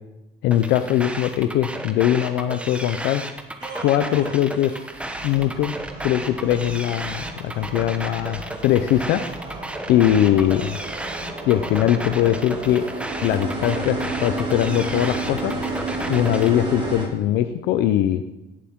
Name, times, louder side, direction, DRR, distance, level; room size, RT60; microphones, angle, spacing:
voice 1, 0.4-3.2 3.8-4.8 5.2-5.8 6.0-9.2 9.9-10.8 11.5-12.8 13.2-15.5 16.1-18.2, left 11 dB, 90° left, 10 dB, 0.7 m, -21 dB
sound 1, 0.5-16.5, right 1 dB, 5° right, 1.2 m, -33 dB
sound 2, 3.6-17.1, right 2 dB, 30° right, 6.0 m, -32 dB
16.5 x 11.5 x 3.7 m, 0.95 s
cardioid pair, 110°, 17 cm